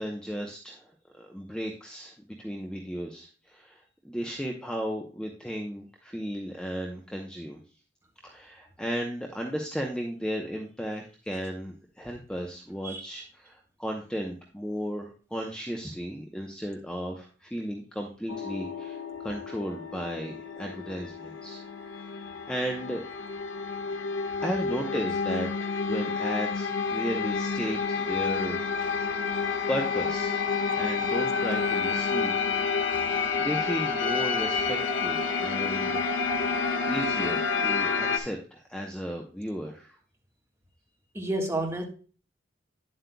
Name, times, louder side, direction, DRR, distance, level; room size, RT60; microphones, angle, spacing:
voice 1, 0.0-7.6 8.2-21.6 22.0-23.0 24.4-29.0 29.7-30.4 30.8-32.3 33.4-36.0 36.9-40.0, equal, 5° left, 0.8 m, -35 dB
sound 1, 18.3-38.2, left 5 dB, 85° left, 1.1 m, -29 dB
voice 2, 41.1-41.8, right 1 dB, 15° right, 1.5 m, -30 dB
9.8 x 7.7 x 2.2 m
head